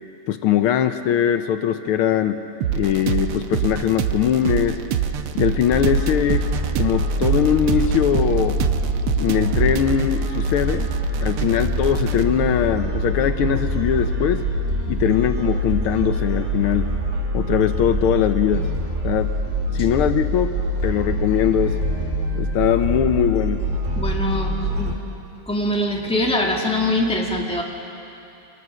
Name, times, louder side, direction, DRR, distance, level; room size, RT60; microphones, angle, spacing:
voice 1, 0.3-2.4 2.7-4.8 5.3-6.5 6.8-8.6 9.2-10.9 11.2-14.4 14.9-16.9 17.3-18.7 19.0-19.3 19.7-20.6 20.8-21.8 22.3-23.6, left 10 dB, 80° left, 8 dB, 1.6 m, -21 dB
sound 1, 2.6-12.2, right 9 dB, 85° right, 1.7 m, -26 dB
sound 2, 5.7-25.0, right 1 dB, 35° right, 2.1 m, -24 dB
voice 2, 24.0-24.9 25.5-27.6, left 1 dB, 5° left, -1 dB, 2.0 m, -23 dB
26.0 x 21.5 x 6.3 m, 2.8 s
omnidirectional pair, 2.4 m